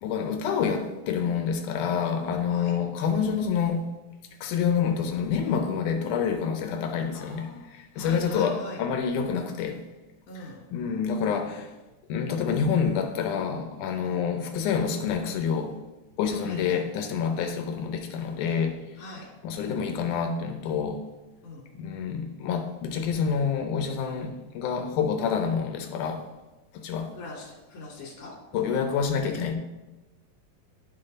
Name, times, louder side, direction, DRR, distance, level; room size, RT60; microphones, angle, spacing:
voice 1, 0.0-3.9 4.4-9.8 10.4-10.5 10.7-11.7 12.1-15.8 16.2-18.8 19.4-21.0 21.8-26.3 26.7-27.1 28.5-29.5, left 6 dB, 80° left, 1.9 m, -27 dB
voice 2, 7.1-7.7 7.9-8.8 10.3-10.6 14.0-14.2 16.3-16.8 17.3-17.5 19.0-19.3 21.4-21.6 27.1-28.3, left 2 dB, 55° left, 2.3 m, -42 dB
11.5 x 3.8 x 3.8 m
omnidirectional pair, 3.9 m